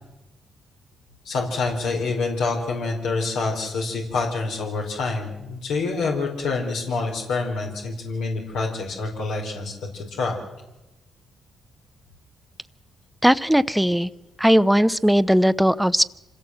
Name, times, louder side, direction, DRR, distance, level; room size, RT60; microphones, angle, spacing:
voice 1, 1.2-10.3, left 3 dB, 85° left, 0 dB, 4.9 m, -27 dB
voice 2, 13.2-14.1 14.4-16.0, equal, 5° right, 14 dB, 0.8 m, -18 dB
26.5 x 17.0 x 8.0 m, 1.0 s
cardioid pair, 90°, 0 cm